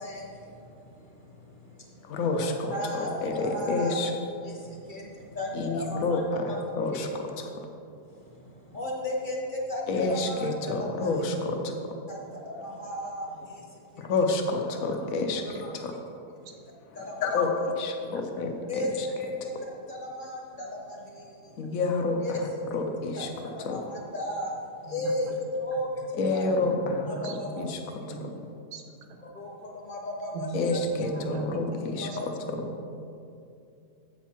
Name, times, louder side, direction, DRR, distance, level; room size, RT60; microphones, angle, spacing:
voice 1, 0.0-2.2 2.7-4.0 4.4-6.2 6.5-6.6 6.9-7.0 8.1-11.1 12.1-14.1 15.6-15.7 16.4-17.5 18.7-21.6 22.2-22.4 23.2-26.4 27.1-27.7 29.3-30.8 31.1-31.2 32.0-32.2, left 1 dB, 35° left, -1 dB, 1.0 m, -36 dB
voice 2, 2.0-4.1 5.5-7.7 9.9-11.6 14.0-16.0 16.9-19.1 21.6-22.4 22.7-23.3 23.6-23.8 26.2-27.8 30.5-32.6, left 3 dB, 65° left, 4 dB, 1.1 m, -29 dB
voice 3, 11.3-11.7 12.3-12.4 14.0-14.1 18.0-18.2 21.4-21.5 24.9-25.4 26.2-27.6 28.1-28.3 28.7-28.8 30.3-30.6 30.9-32.2 32.5-32.8, right 3 dB, 85° right, 4 dB, 1.4 m, -38 dB
8.1 x 4.5 x 5.7 m, 2.6 s
omnidirectional pair, 1.7 m